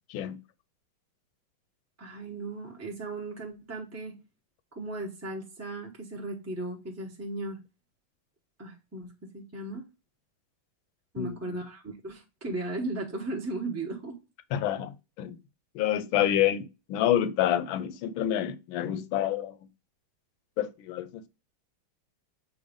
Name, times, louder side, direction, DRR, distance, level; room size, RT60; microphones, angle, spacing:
voice 1, 2.0-4.2 4.7-7.6 8.6-9.1 9.3-9.8 11.1-14.2, right 2 dB, 15° right, 0.5 m, -36 dB
voice 2, 11.2-11.6 14.5-15.4 15.7-19.6 20.6-21.3, left 11 dB, 75° left, 1.4 m, -28 dB
7.1 x 2.6 x 5.1 m
omnidirectional pair, 2.3 m